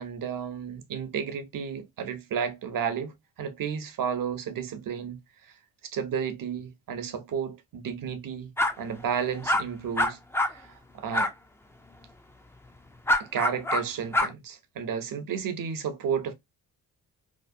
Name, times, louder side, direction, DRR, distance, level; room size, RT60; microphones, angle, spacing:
voice 1, 0.0-5.6 5.8-8.5 8.8-11.3 13.2-16.3, right 7 dB, 60° right, 0.8 m, -32 dB
sound 1, 8.6-8.7 9.4-9.6 10.0-10.5 11.1-11.3 13.1-13.8 14.1-14.3, left 1 dB, 5° left, 0.4 m, -24 dB
2.9 x 2.0 x 2.4 m
cardioid pair, 80°, 38 cm